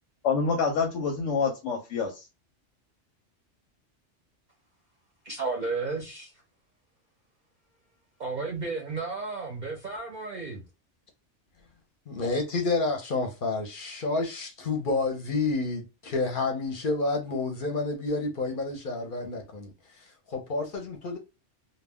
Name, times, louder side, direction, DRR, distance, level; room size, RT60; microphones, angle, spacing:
voice 1, 0.2-2.2, left 5 dB, 90° left, 0.9 m, -27 dB
voice 2, 5.2-6.3 8.2-10.6, right 3 dB, 50° right, 0.6 m, -33 dB
voice 3, 12.1-21.2, left 3 dB, 55° left, 0.7 m, -29 dB
2.2 x 2.1 x 3.4 m
omnidirectional pair, 1.2 m